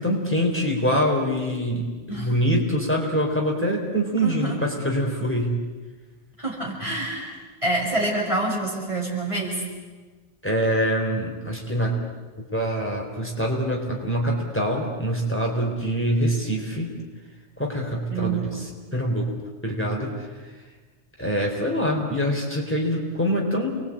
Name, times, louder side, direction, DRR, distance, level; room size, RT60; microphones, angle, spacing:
voice 1, 0.0-5.6 10.4-12.0 12.4-16.9 17.6-19.3 19.6-20.5 21.2-23.7, equal, 10° left, -1 dB, 4.1 m, -25 dB
voice 2, 4.2-4.6 6.4-9.6 18.1-18.7, right 2 dB, 25° right, -2 dB, 6.1 m, -27 dB
29.5 x 22.0 x 8.8 m, 1.4 s
omnidirectional pair, 1.2 m